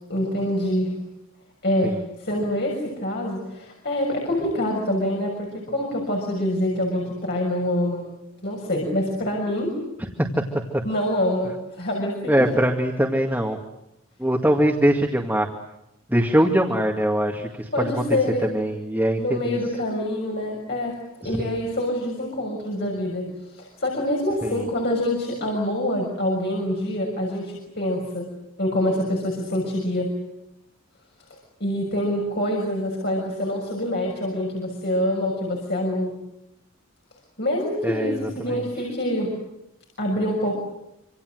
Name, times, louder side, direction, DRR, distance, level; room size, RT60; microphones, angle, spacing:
voice 1, 0.1-0.9 1.6-8.1 8.4-9.8 10.8-12.5 17.7-18.5 19.2-21.0 21.2-28.3 28.6-30.1 31.6-36.1 37.4-39.3 40.0-40.6, left 1 dB, 50° left, -1 dB, 6.5 m, -25 dB
voice 2, 12.3-13.6 14.2-15.5 16.1-17.9 18.4-19.6 21.2-21.6 24.4-24.6 37.8-38.6, equal, 10° right, 1 dB, 2.0 m, -22 dB
27.0 x 27.0 x 7.9 m, 0.86 s
head